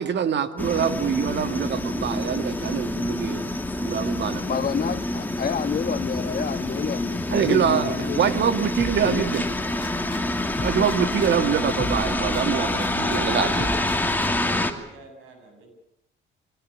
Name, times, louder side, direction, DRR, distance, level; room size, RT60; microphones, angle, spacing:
voice 1, 0.0-3.5 3.8-4.6 7.3-9.4 10.6-12.7 13.1-13.7, right 8 dB, 60° right, 1.9 m, -24 dB
sound 1, 0.6-14.7, left 1 dB, 10° left, 2.6 m, -27 dB
voice 2, 4.4-8.3 9.0-9.2, left 7 dB, 50° left, 1.5 m, -29 dB
sound 2, 8.8-10.2 10.6-13.2 13.6-14.6, left 3 dB, 25° left, 3.2 m, -37 dB
voice 3, 12.5-15.7, right 3 dB, 90° right, 8.0 m, -38 dB
23.0 x 19.5 x 8.6 m
cardioid pair, 90°, 20 cm